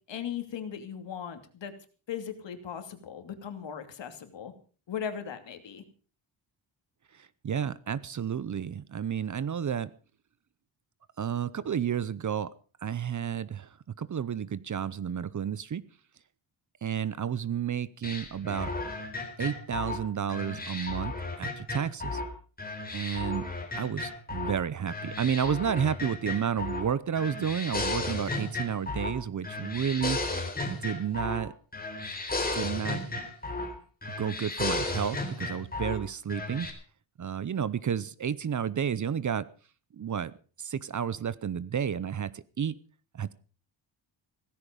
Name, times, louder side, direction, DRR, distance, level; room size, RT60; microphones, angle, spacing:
voice 1, 0.1-1.7 2.1-4.5 4.9-5.8, left 8 dB, 70° left, 8 dB, 2.8 m, -38 dB
voice 2, 7.2-9.9 11.2-12.5 12.8-15.8 16.8-18.7 19.4-22.2 22.9-23.5 23.8-30.2 30.7-31.5 32.5-33.2 34.2-36.7 37.2-39.5 39.9-40.3 40.6-42.8 43.1-43.3, right 8 dB, 40° right, 19 dB, 0.7 m, -31 dB
sound 1, 18.0-22.3 22.6-24.6 24.9-26.9 27.1-29.2 29.4-31.5 31.7-33.7 34.0-36.0 36.3-36.7, left 2 dB, 20° left, 3.9 m, -34 dB
17.0 x 15.0 x 5.3 m, 0.38 s
wide cardioid pair, 155°, 46 cm